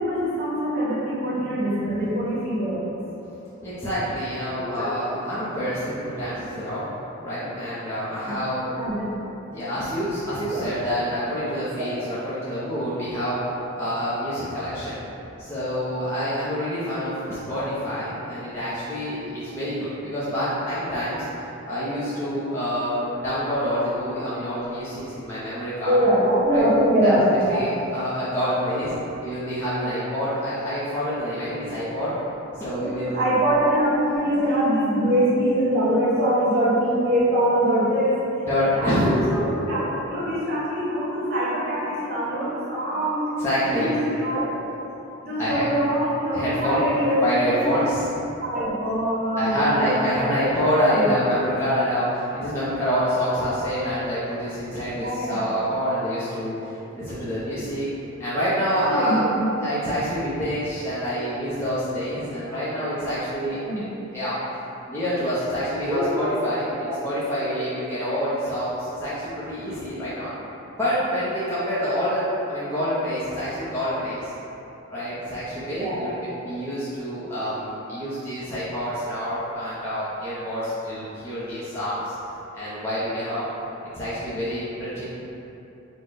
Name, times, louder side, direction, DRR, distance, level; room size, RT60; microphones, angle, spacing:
voice 1, 0.0-3.0 8.2-8.3 8.6-9.3 10.5-10.8 25.9-27.6 33.1-38.1 38.7-43.2 43.6-44.4 45.2-47.7 48.4-50.1 50.4-50.5 50.9-51.1 54.9-55.4 58.8-59.4 63.6-63.8 65.9-66.3 66.8-67.0 67.5-67.6 75.7-76.1, equal, 45° right, -9 dB, 1.2 m, -23 dB
voice 2, 3.6-6.9 7.2-8.7 9.5-13.4 13.7-15.0 15.4-21.3 21.6-26.0 26.5-26.7 27.0-27.2 27.5-28.9 29.2-32.1 32.5-33.2 38.4-39.1 43.4-43.9 45.4-45.7 46.3-46.9 47.2-48.1 49.4-57.9 58.2-59.2 59.6-64.4 64.9-70.3 70.8-74.3 74.9-82.1 82.5-83.5 83.9-85.0, equal, 10° left, -12 dB, 0.6 m, -27 dB
4.3 x 2.2 x 4.7 m, 3.0 s
head